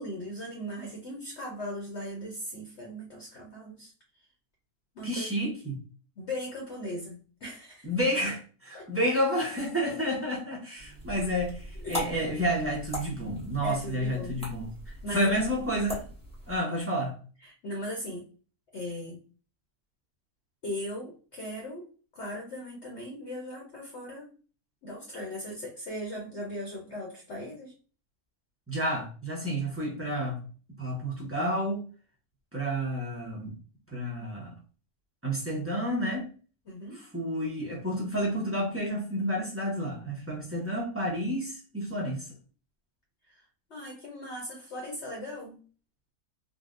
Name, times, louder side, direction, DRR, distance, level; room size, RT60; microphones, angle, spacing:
voice 1, 0.0-3.9 4.9-5.5 6.2-7.9 8.7-8.9 11.8-12.0 13.6-14.3 15.0-15.3 17.4-18.3 18.7-19.2 20.6-21.9 22.1-24.3 24.8-27.7 36.7-37.0 43.3-43.4 43.7-45.6, left 1 dB, 55° left, 0.9 m, -38 dB
voice 2, 5.0-5.8 7.8-14.7 15.1-16.1 16.5-17.1 28.7-30.4 30.8-31.8 32.5-33.5 33.9-34.5 35.2-36.3 36.9-42.2, equal, 20° right, 0.3 m, -30 dB
sound 1, 10.8-16.6, equal, 5° left, 0.8 m, -40 dB
3.8 x 2.2 x 2.4 m
omnidirectional pair, 1.7 m